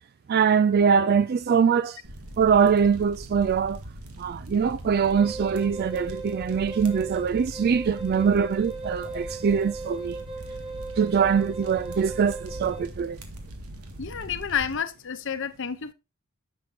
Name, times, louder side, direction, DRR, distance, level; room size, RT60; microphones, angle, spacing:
voice 1, 0.3-2.0 2.4-3.8 4.2-10.2 11.0-13.2, right 6 dB, 45° right, 0.3 m, -23 dB
sound 1, 2.0-14.8, right 1 dB, 85° right, 1.8 m, -41 dB
Wind instrument woodwind instrument, 5.0-12.9, right 3 dB, 25° right, 1.8 m, -38 dB
voice 2, 14.0-15.9, left 7 dB, 60° left, 0.9 m, -30 dB
10.0 x 6.6 x 2.8 m
head